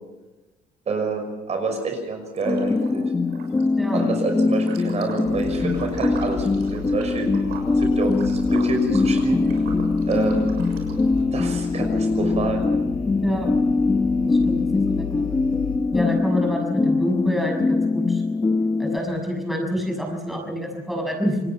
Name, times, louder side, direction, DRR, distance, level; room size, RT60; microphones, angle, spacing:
voice 1, 0.9-3.1 3.9-7.3 7.8-9.4 10.1-10.5 11.3-12.6, right 3 dB, 40° right, 4 dB, 5.8 m, -27 dB
Liquid, 2.3-3.0 3.3-11.2, right 5 dB, 75° right, 6.8 m, -41 dB
sound 1, 2.5-19.0, left 3 dB, 20° left, 1.0 m, -22 dB
sound 2, 5.2-15.8, left 5 dB, 60° left, 6.1 m, -35 dB
voice 2, 13.2-13.5 14.2-15.3 15.9-18.2 18.8-21.5, equal, ahead, 1 dB, 6.2 m, -27 dB
28.0 x 19.5 x 5.9 m, 1.1 s
cardioid pair, 110°, 17 cm